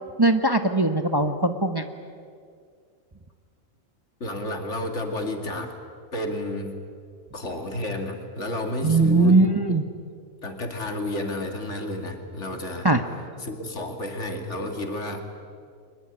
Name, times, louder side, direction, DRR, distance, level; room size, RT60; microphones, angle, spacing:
voice 1, 0.2-1.8 8.8-9.8 12.8-13.0, right 2 dB, 20° right, 7 dB, 1.0 m, -20 dB
voice 2, 4.2-5.7 6.1-6.8 7.3-9.8 10.4-12.9 13.4-15.2, left 1 dB, 70° left, 5 dB, 2.7 m, -31 dB
23.0 x 20.5 x 9.8 m, 2.2 s
omnidirectional pair, 1.3 m